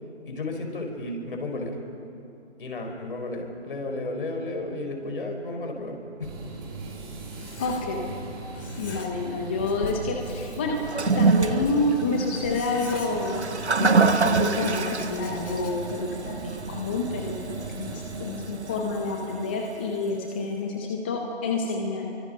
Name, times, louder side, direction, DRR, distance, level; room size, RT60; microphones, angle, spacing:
voice 1, 0.2-1.8 2.6-6.3, left 2 dB, 55° left, 3 dB, 5.0 m, -33 dB
sound 1, 6.2-18.4, right 3 dB, 20° right, 5.4 m, -40 dB
Writing, 6.3-8.2 8.5-9.3 9.6-13.8 14.4-16.0, left 3 dB, 75° left, 4.3 m, -41 dB
voice 2, 7.6-8.1 8.8-10.8 11.0-13.4 13.8-22.1, left 3 dB, 10° left, 2 dB, 0.7 m, -28 dB
Toilet flush, 10.8-20.1, right 4 dB, 80° right, 1.3 m, -27 dB
29.0 x 24.0 x 5.2 m, 2.7 s
figure-of-eight pair, 150°, 33 cm